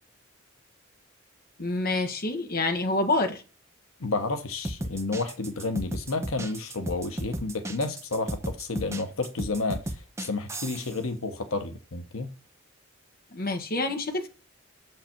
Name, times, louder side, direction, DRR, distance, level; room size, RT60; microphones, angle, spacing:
voice 1, 1.6-3.4 13.3-14.3, left 2 dB, 45° left, 1.3 m, -27 dB
voice 2, 4.0-12.3, left 3 dB, 90° left, 1.0 m, -31 dB
sound 1, 4.5-11.0, right 1 dB, 15° right, 0.7 m, -35 dB
7.2 x 4.9 x 4.5 m
head